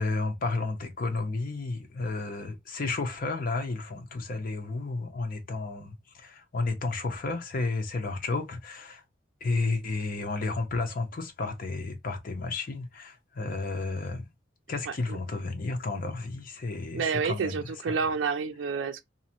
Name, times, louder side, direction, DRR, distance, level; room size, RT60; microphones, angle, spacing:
voice 1, 0.0-9.0 9.4-14.2 14.7-18.0, left 3 dB, 50° left, 0.6 m, -32 dB
voice 2, 14.9-15.2 16.9-19.0, right 5 dB, 90° right, 0.4 m, -29 dB
2.6 x 2.0 x 2.7 m
head